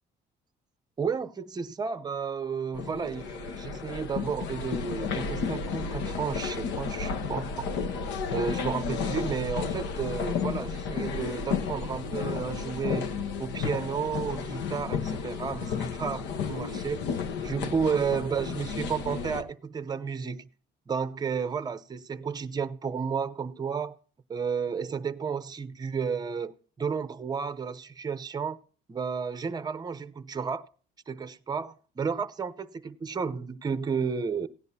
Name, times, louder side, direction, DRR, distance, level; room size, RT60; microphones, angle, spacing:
voice 1, 1.0-7.7 8.3-13.1 13.4-17.0 17.4-20.5 20.9-24.0 24.3-28.6 28.9-30.7 31.1-34.5, right 6 dB, 20° right, 0.7 m, -32 dB
sound 1, 2.7-19.4, left 5 dB, 75° left, 1.2 m, -32 dB
17.0 x 10.5 x 2.8 m
cardioid pair, 130°, 18 cm